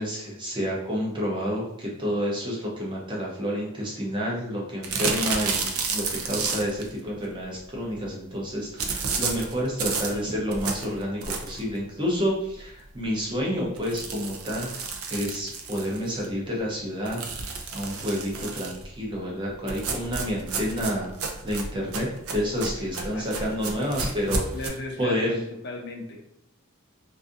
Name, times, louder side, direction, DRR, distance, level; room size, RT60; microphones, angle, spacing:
voice 1, 0.0-14.7 15.1-21.1 21.4-24.4 25.0-25.4, equal, 20° right, -3 dB, 0.6 m, -29 dB
sound 1, 4.8-6.9 8.8-11.7 12.2-12.3 12.6-12.7 13.0-13.1 13.7-16.3 17.1-18.8 19.7-24.7, right 4 dB, 75° right, 0.4 m, -31 dB
voice 2, 23.0-23.6 24.5-26.2, left 2 dB, 50° left, 1 dB, 0.4 m, -37 dB
2.5 x 2.4 x 2.5 m, 0.75 s
head